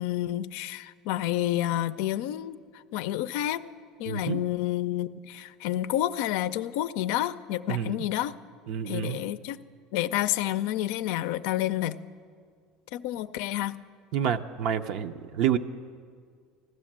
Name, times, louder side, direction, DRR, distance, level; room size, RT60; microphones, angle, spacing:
voice 1, 0.0-2.6 2.9-3.6 4.0-8.4 8.8-9.6 9.9-12.0 12.9-13.8, left 13 dB, 75° left, 13 dB, 0.5 m, -29 dB
voice 2, 4.1-4.4 7.7-7.9 8.7-9.2 14.1-15.6, right 9 dB, 65° right, 6 dB, 0.6 m, -28 dB
16.0 x 12.0 x 7.4 m, 2.1 s
supercardioid pair, 120°, 0 cm